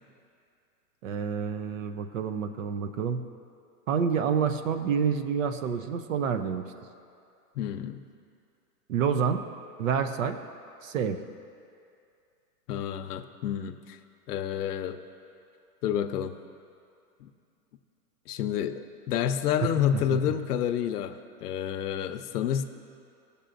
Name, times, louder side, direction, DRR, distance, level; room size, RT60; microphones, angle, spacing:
voice 1, 1.0-3.2 3.9-6.7 8.9-9.4 9.8-10.4 10.8-11.2, right 7 dB, 55° right, 9 dB, 0.6 m, -28 dB
voice 2, 7.6-8.0 12.7-14.0 14.3-15.0 15.8-16.3 17.2-17.3 18.3-22.6, left 9 dB, 75° left, 8 dB, 0.7 m, -29 dB
16.5 x 6.8 x 2.5 m, 2.4 s
supercardioid pair, 160°, 47 cm